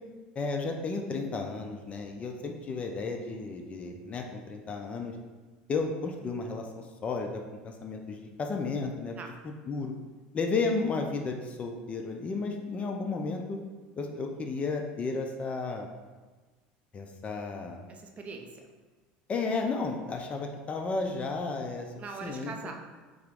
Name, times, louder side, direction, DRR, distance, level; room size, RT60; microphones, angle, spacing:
voice 1, 0.4-5.1 5.7-9.2 9.4-9.9 10.3-13.6 14.0-15.9 16.9-17.8 19.3-21.9 22.2-22.5, left 4 dB, 30° left, 3 dB, 0.4 m, -33 dB
voice 2, 17.9-18.7 22.0-22.8, right 4 dB, 30° right, 3 dB, 0.5 m, -41 dB
3.5 x 2.9 x 3.5 m, 1.3 s
supercardioid pair, 120°, 4 cm